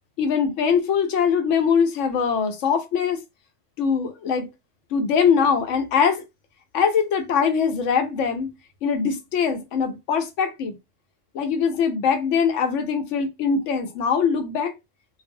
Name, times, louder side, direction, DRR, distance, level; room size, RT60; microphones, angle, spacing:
voice 1, 0.2-3.2 3.8-4.5 4.9-6.2 6.7-8.5 8.8-10.8 11.3-14.7, left 6 dB, 85° left, 0.9 m, -22 dB
2.5 x 2.0 x 2.6 m
omnidirectional pair, 1.2 m